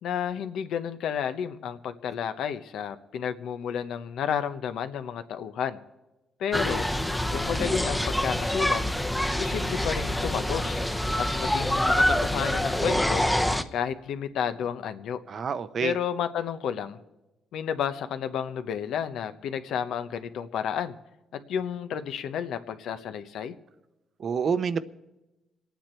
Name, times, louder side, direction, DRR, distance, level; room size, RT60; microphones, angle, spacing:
voice 1, 0.0-5.8 6.4-6.9 7.3-8.8 9.4-10.8 11.2-13.3 13.7-15.2 15.8-17.0 17.5-20.9 21.3-23.5, left 8 dB, 75° left, 10 dB, 0.9 m, -31 dB
sound 1, 6.5-13.6, left 1 dB, 5° left, 0.8 m, -26 dB
voice 2, 15.3-15.9 24.2-24.8, right 6 dB, 50° right, 14 dB, 0.7 m, -27 dB
27.0 x 9.3 x 4.5 m, 1.0 s
cardioid pair, 90°, 0 cm